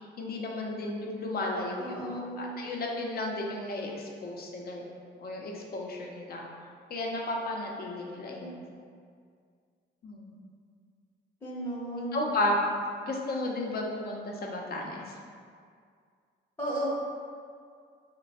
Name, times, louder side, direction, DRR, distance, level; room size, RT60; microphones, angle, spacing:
voice 1, 0.2-4.9 5.2-6.5 6.9-8.6 10.0-10.4 12.1-12.6 13.0-15.2, left 1 dB, 50° left, 0 dB, 0.6 m, -33 dB
voice 2, 1.8-2.6 8.4-8.6 11.4-12.2 16.6-16.9, right 1 dB, 10° left, -9 dB, 0.7 m, -35 dB
3.2 x 2.2 x 4.1 m, 2.2 s
cardioid pair, 90°, 20 cm